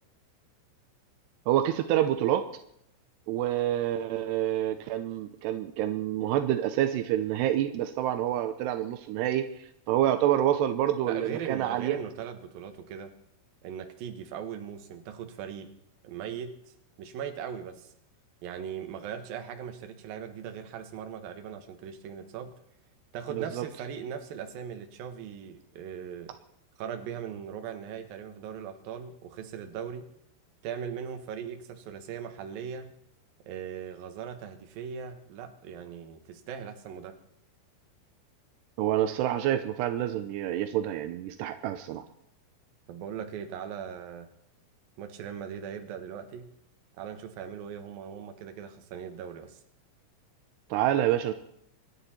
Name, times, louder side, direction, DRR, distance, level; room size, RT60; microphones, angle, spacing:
voice 1, 1.5-2.5 3.3-9.4 9.9-12.0 23.4-23.6 38.8-42.0 50.7-51.3, right 12 dB, 85° right, 9 dB, 2.4 m, -27 dB
voice 2, 11.0-13.1 13.6-15.7 16.0-17.9 18.4-22.5 23.1-26.3 26.8-30.1 30.6-32.9 33.4-37.2 42.9-44.3 45.0-46.5 47.0-49.6, right 8 dB, 65° right, 6 dB, 2.6 m, -39 dB
26.0 x 11.0 x 4.4 m, 0.74 s
omnidirectional pair, 5.8 m